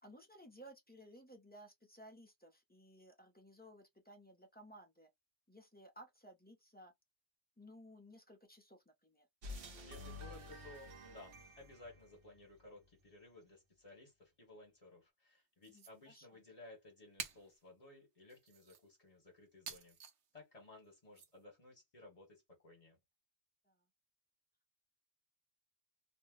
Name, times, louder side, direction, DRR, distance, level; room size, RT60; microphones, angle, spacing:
voice 1, 0.0-5.1 5.5-6.9 7.6-9.3 15.7-16.4 23.6-23.8, equal, 15° left, 0.3 m, -58 dB
sound 1, 9.4-12.8, left 2 dB, 60° right, 0.8 m, -51 dB
voice 2, 9.8-20.0 20.3-23.0, left 2 dB, 35° left, 1.1 m, -58 dB
sound 2, 15.6-15.9 17.2-17.6 18.3-18.8 19.7-20.2 21.2-21.3, right 7 dB, 90° right, 1.0 m, -49 dB
2.6 x 2.0 x 3.5 m
omnidirectional pair, 1.1 m